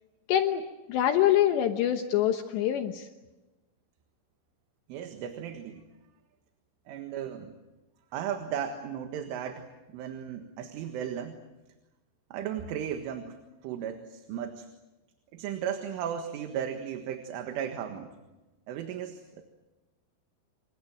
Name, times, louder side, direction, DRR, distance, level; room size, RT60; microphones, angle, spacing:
voice 1, 0.3-3.1, left 11 dB, 70° left, 6 dB, 2.9 m, -25 dB
voice 2, 4.9-5.8 6.9-7.5 8.1-11.4 12.3-13.4 13.6-14.7 15.3-18.1 18.7-19.4, right 9 dB, 75° right, 5 dB, 4.0 m, -35 dB
28.0 x 24.0 x 7.8 m, 1.1 s
omnidirectional pair, 5.9 m